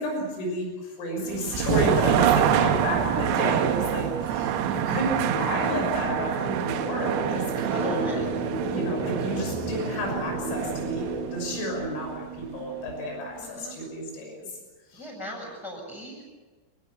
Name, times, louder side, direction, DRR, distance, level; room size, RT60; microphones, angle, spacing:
voice 1, 0.0-8.2 8.7-14.6 14.9-15.1, equal, 80° left, 2 dB, 9.0 m, -31 dB
sound 1, 1.3-13.1, right 10 dB, 85° right, 3.9 m, -27 dB
sound 2, 4.2-12.2, equal, 50° left, 6.4 m, -36 dB
voice 2, 7.6-8.3 13.4-13.8 14.9-16.2, equal, 15° left, -3 dB, 6.9 m, -38 dB
25.0 x 21.5 x 7.1 m, 1.3 s
omnidirectional pair, 5.9 m